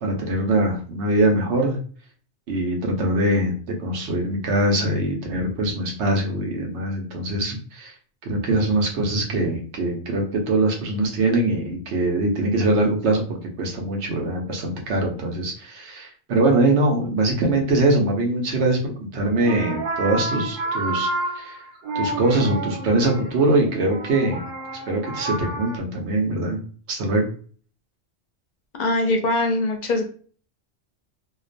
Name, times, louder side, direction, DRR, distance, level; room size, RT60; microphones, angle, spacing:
voice 1, 0.0-1.8 2.5-3.5 3.8-7.9 8.2-13.2 13.6-21.1 21.3-21.6 21.9-24.4 24.9-26.6 26.9-27.3, right 2 dB, 75° right, 1 dB, 1.0 m, -22 dB
sound 1, 19.3-25.8, right 2 dB, 55° right, 0.6 m, -30 dB
voice 2, 28.8-30.1, left 2 dB, 55° left, 3 dB, 0.5 m, -22 dB
2.5 x 2.2 x 2.5 m, 0.41 s
omnidirectional pair, 1.2 m